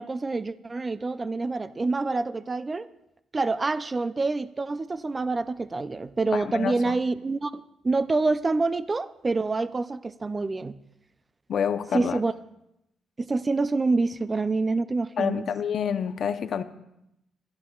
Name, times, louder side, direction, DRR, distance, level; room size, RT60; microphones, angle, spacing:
voice 1, 0.0-2.9 3.3-10.8 11.9-12.3 13.2-15.5, right 3 dB, 25° right, 13 dB, 0.4 m, -27 dB
voice 2, 6.3-7.0 11.5-12.2 15.2-16.6, left 7 dB, 60° left, 10 dB, 0.7 m, -28 dB
26.0 x 11.5 x 2.4 m, 0.83 s
cardioid pair, 90°, 0 cm